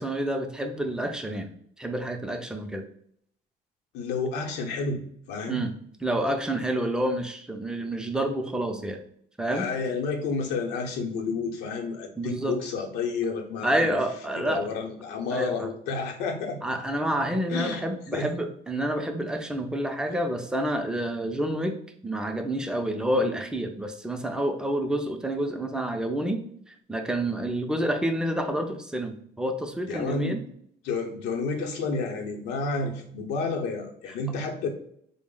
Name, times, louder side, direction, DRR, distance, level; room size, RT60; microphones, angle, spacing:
voice 1, 0.0-1.5 1.8-2.8 5.5-5.7 6.0-9.0 9.4-9.7 12.2-12.5 13.6-14.7 15.3-15.7 16.6-21.8 22.0-30.4, right 1 dB, 5° right, 5 dB, 0.4 m, -28 dB
voice 2, 3.9-5.0 5.3-5.6 9.5-14.0 14.3-16.6 17.5-17.8 18.1-18.3 20.1-20.2 29.8-30.4 30.8-34.7, left 4 dB, 90° left, 2 dB, 0.7 m, -30 dB
4.0 x 2.0 x 3.7 m, 0.67 s
cardioid pair, 110°, 17 cm